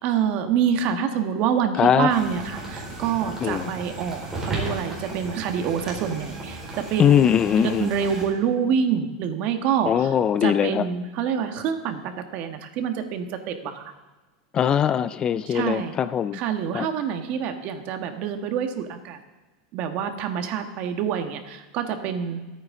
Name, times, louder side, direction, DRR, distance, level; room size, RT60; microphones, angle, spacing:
voice 1, 0.0-7.3 7.6-10.1 10.4-13.9 15.5-15.9 16.3-19.2 19.7-22.6, right 7 dB, 45° right, 7 dB, 1.5 m, -26 dB
voice 2, 1.8-2.1 3.4-3.7 7.0-7.9 9.9-10.9 14.5-16.4 16.7-16.9, left 9 dB, 25° left, 15 dB, 0.3 m, -21 dB
sound 1, 2.1-8.2, right 2 dB, 15° right, 4.5 m, -35 dB
24.0 x 9.1 x 3.8 m, 1.2 s
supercardioid pair, 150°, 3 cm